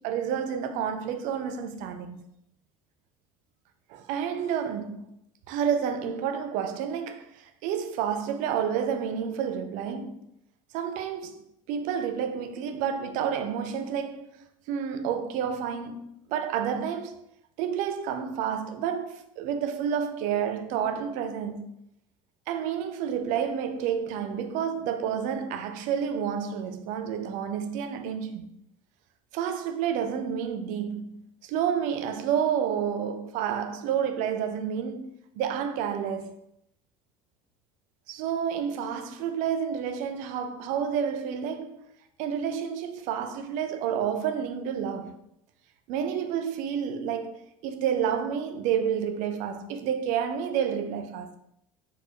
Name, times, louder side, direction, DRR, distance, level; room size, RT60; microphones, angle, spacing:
voice 1, 0.0-2.2 3.9-5.0 5.5-10.3 10.7-17.2 17.6-21.7 22.5-28.5 29.3-35.1 35.4-36.4 38.1-41.8 42.2-45.1 45.9-51.3, right 8 dB, 50° right, 0.4 m, -30 dB
4.0 x 2.1 x 2.8 m
figure-of-eight pair, 70°, 17 cm